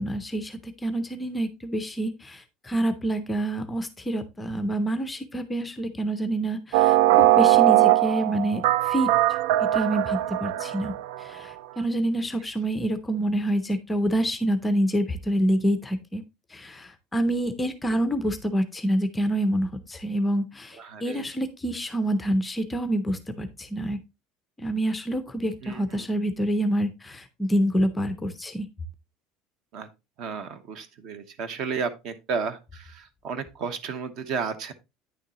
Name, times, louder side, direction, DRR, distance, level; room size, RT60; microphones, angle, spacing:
voice 1, 0.0-9.4 9.7-10.9 11.2-16.2 16.5-24.0 24.6-28.7, right 1 dB, 10° left, 10 dB, 0.5 m, -27 dB
sound 1, 6.7-11.2, right 15 dB, 80° right, 0.3 m, -20 dB
voice 2, 20.8-21.3 25.6-26.1 29.7-29.9 30.2-34.7, right 5 dB, 40° right, 12 dB, 0.9 m, -33 dB
9.3 x 6.5 x 2.9 m, 0.25 s
cardioid pair, 175°, 0 cm